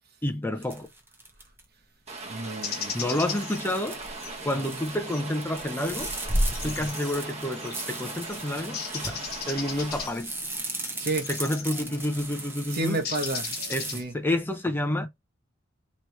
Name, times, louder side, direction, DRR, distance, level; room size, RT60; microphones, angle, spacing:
voice 1, 0.2-0.9 2.9-4.0 4.4-6.1 6.6-10.3 11.3-13.0 13.7-15.1, left 1 dB, 10° left, 0.6 m, -29 dB
sound 1, 0.6-1.6 3.3-4.9 5.3-14.0, right 1 dB, 10° right, 0.9 m, -35 dB
Rain, 2.1-10.1, right 3 dB, 35° right, 1.2 m, -39 dB
voice 2, 2.2-3.2 4.5-4.8 6.6-6.9 11.0-11.3 11.8-12.0 12.7-13.6 13.9-14.1, right 2 dB, 55° right, 1.1 m, -32 dB
sound 2, 2.6-14.0, left 7 dB, 55° left, 1.0 m, -40 dB
4.1 x 3.1 x 3.2 m
head